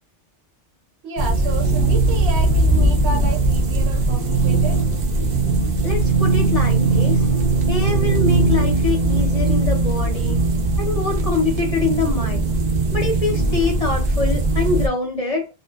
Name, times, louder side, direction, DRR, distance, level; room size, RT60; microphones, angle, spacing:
voice 1, 1.0-4.9 10.2-10.3, right 2 dB, 65° right, 1.0 m, -31 dB
sound 1, 1.2-14.9, right 2 dB, 50° right, 0.6 m, -19 dB
voice 2, 5.8-7.3 7.7-10.4 10.8-12.5 12.9-15.5, left 3 dB, 35° left, 0.8 m, -24 dB
2.5 x 2.4 x 2.3 m
omnidirectional pair, 1.2 m